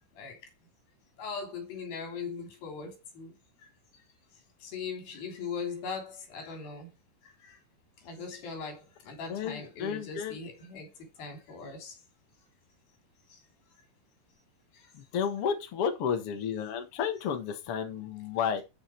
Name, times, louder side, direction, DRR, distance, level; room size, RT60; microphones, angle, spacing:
voice 1, 1.2-3.3 4.6-6.9 7.4-7.6 8.0-10.9 11.2-11.9, left 5 dB, 85° left, 5.1 m, -39 dB
voice 2, 9.3-10.4 14.9-18.6, left 7 dB, 50° left, 2.0 m, -32 dB
13.5 x 5.5 x 4.5 m
omnidirectional pair, 4.1 m